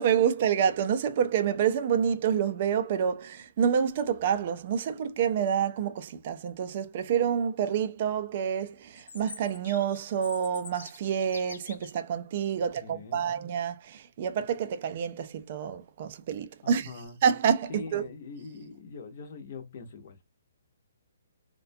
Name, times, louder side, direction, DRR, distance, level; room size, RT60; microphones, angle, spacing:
voice 1, 0.0-16.9 17.2-18.0, right 8 dB, 30° right, 0.3 m, -28 dB
Chirp tweet, 8.9-11.9, left 4 dB, 80° left, 0.5 m, -45 dB
voice 2, 12.8-13.3 16.6-17.2 17.7-20.3, left 4 dB, 35° left, 0.6 m, -43 dB
2.4 x 2.2 x 2.5 m
hypercardioid pair, 175°, 0 cm